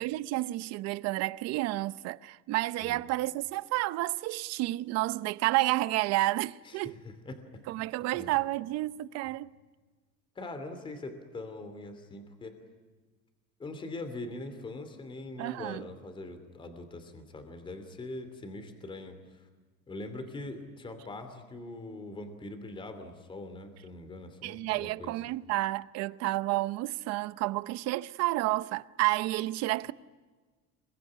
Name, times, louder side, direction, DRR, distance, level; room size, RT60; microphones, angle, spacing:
voice 1, 0.0-7.0 7.7-9.5 15.4-15.9 24.4-29.9, right 18 dB, 60° right, 0.8 m, -30 dB
voice 2, 6.6-7.6 8.1-8.3 10.4-12.6 13.6-19.4 19.9-25.3, left 2 dB, 15° left, 2.7 m, -42 dB
26.5 x 23.0 x 9.8 m
cardioid pair, 170°, 29 cm